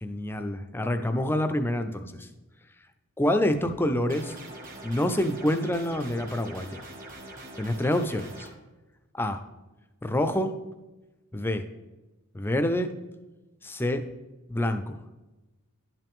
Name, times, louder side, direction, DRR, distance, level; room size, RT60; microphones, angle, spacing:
voice 1, 0.0-2.3 3.2-4.4 4.8-6.8 7.6-8.5 9.1-9.4 10.0-10.5 11.3-11.7 12.3-12.9 13.6-14.0 14.5-15.0, left 1 dB, 10° left, 8 dB, 0.4 m, -27 dB
sound 1, 4.1-8.5, right 1 dB, 40° right, 1.4 m, -43 dB
11.0 x 5.7 x 3.6 m, 1.1 s
head